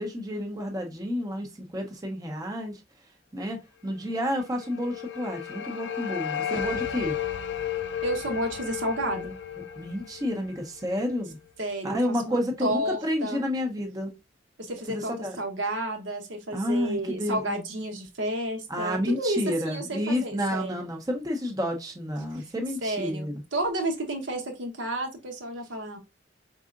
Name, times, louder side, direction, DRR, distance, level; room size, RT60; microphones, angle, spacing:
voice 1, 0.0-2.8 3.3-3.6 3.8-7.1 9.7-11.4 11.8-14.1 14.9-15.4 16.5-17.6 18.7-23.4, left 1 dB, 20° right, 0.7 m, -30 dB
sound 1, 4.3-11.3, left 9 dB, 65° left, 0.4 m, -34 dB
voice 2, 8.0-9.4 11.6-13.4 14.6-20.9 22.3-22.5 22.8-26.0, right 1 dB, 80° right, 1.0 m, -31 dB
4.8 x 3.7 x 2.4 m
head